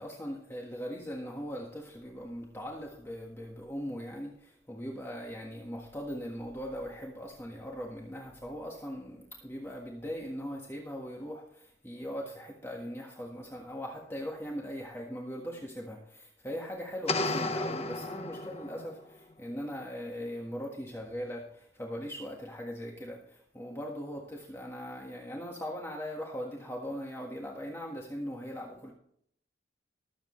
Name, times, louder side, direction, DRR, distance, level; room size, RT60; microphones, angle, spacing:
voice 1, 0.0-28.9, equal, 15° left, -1 dB, 1.6 m, -40 dB
sound 1, 17.1-19.0, left 2 dB, 35° left, 0.9 m, -33 dB
20.0 x 8.0 x 3.2 m, 0.67 s
head